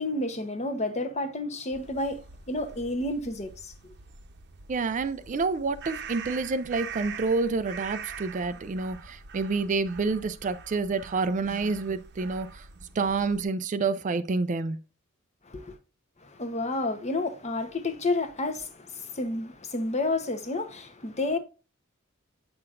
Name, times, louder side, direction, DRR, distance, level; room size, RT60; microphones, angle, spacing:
voice 1, 0.0-2.2 2.5-3.7 15.5-15.7 16.2-21.4, left 2 dB, 30° left, 0.9 m, -30 dB
sound 1, 1.7-13.4, right 6 dB, 50° right, 0.8 m, -44 dB
voice 2, 4.7-12.7 12.9-14.8, right 4 dB, 35° right, 0.4 m, -28 dB
7.8 x 5.8 x 2.5 m
head